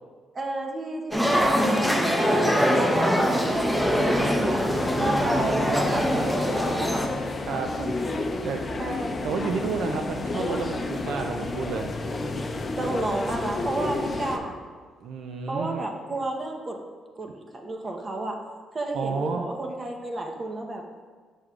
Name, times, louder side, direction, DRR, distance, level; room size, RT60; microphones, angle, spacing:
voice 1, 0.3-4.4 5.0-6.9 7.8-7.9 8.8-9.3 12.8-14.5 15.5-16.8 17.2-18.4 18.7-20.8, right 2 dB, 35° right, 2 dB, 0.9 m, -31 dB
sound 1, 1.1-7.1, equal, 5° right, 0.8 m, -23 dB
sound 2, 3.5-14.4, left 2 dB, 35° left, 0.6 m, -31 dB
voice 2, 4.9-6.3 7.5-7.7 8.4-8.7 9.2-11.9 15.0-15.8 18.9-19.5, right 5 dB, 75° right, 4 dB, 0.4 m, -31 dB
9.1 x 6.3 x 2.4 m, 1.5 s
cardioid pair, 90°, 0 cm